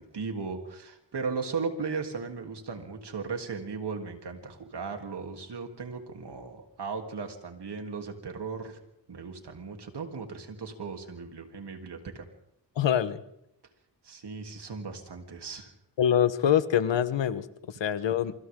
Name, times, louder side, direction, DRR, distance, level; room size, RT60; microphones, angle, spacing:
voice 1, 0.1-8.8 9.1-12.2 14.0-15.7, right 5 dB, 65° right, 4 dB, 3.4 m, -36 dB
voice 2, 12.8-13.2 16.0-18.3, left 9 dB, 85° left, 13 dB, 1.3 m, -25 dB
27.5 x 25.5 x 3.8 m, 0.80 s
cardioid pair, 75°, 43 cm